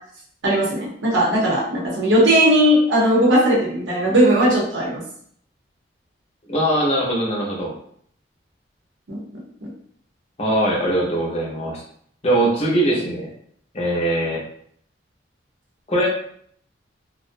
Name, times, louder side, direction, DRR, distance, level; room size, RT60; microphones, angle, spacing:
voice 1, 0.4-5.0 9.1-9.2 12.9-13.0, right 1 dB, 85° right, -3 dB, 0.8 m, -18 dB
voice 2, 6.5-7.7 10.4-11.8 12.2-13.3 13.7-14.4 15.9-16.1, right 1 dB, 35° left, -2 dB, 0.5 m, -21 dB
2.3 x 2.0 x 2.5 m, 0.65 s
head